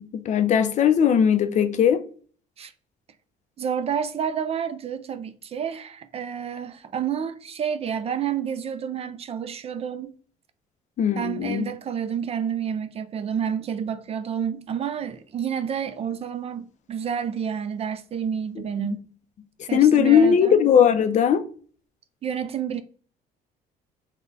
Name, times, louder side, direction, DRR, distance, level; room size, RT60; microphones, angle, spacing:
voice 1, 0.0-2.0 11.0-11.7 18.8-18.9 19.6-21.4, left 8 dB, 45° left, 0.4 m, -19 dB
voice 2, 3.6-10.1 11.2-19.0 19.7-20.6 22.2-22.8, right 8 dB, 35° right, 0.4 m, -29 dB
3.7 x 2.1 x 3.8 m
cardioid pair, 110°, 17 cm